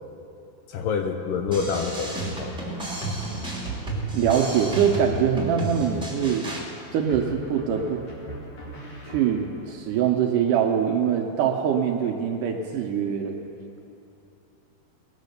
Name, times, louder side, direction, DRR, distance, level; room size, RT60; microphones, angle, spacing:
voice 1, 0.7-2.6, left 5 dB, 80° left, 5 dB, 2.2 m, -27 dB
sound 1, 1.5-6.6, right 1 dB, ahead, 2.3 m, -32 dB
voice 2, 4.1-6.4 6.9-8.0 9.1-13.4, right 8 dB, 75° right, 2 dB, 2.0 m, -23 dB
sound 2, 7.1-9.7, right 1 dB, 45° left, 3.4 m, -41 dB
20.5 x 7.3 x 6.6 m, 2.8 s
omnidirectional pair, 4.3 m